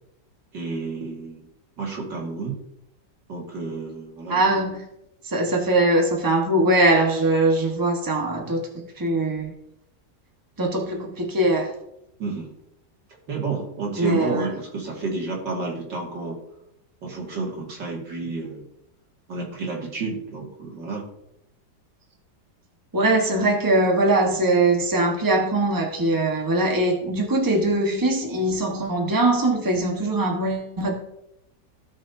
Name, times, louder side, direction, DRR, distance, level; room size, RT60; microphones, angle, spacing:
voice 1, 0.5-1.5 1.8-2.6 3.3-4.6 12.2-12.5 13.3-16.4 17.0-18.7 19.3-21.1, right 3 dB, 90° right, 2.9 m, -30 dB
voice 2, 4.3-4.9 5.2-9.5 10.6-11.7 14.0-14.5 22.9-30.9, right 2 dB, 15° right, 1.3 m, -21 dB
15.5 x 6.2 x 2.8 m
omnidirectional pair, 1.9 m